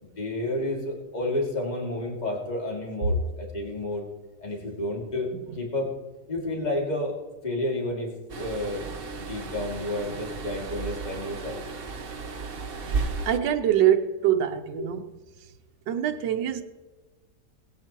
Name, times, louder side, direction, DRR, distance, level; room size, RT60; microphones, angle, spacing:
voice 1, 0.0-4.1 4.4-5.9 6.3-7.2 7.4-8.9 9.2-11.6 14.8-14.9, left 1 dB, 25° left, 2.4 m, -31 dB
sound 1, 8.3-13.4, right 4 dB, 40° right, 0.9 m, -34 dB
voice 2, 13.3-15.1 15.9-16.6, right 10 dB, 90° right, 1.5 m, -24 dB
20.0 x 9.1 x 2.9 m
omnidirectional pair, 1.9 m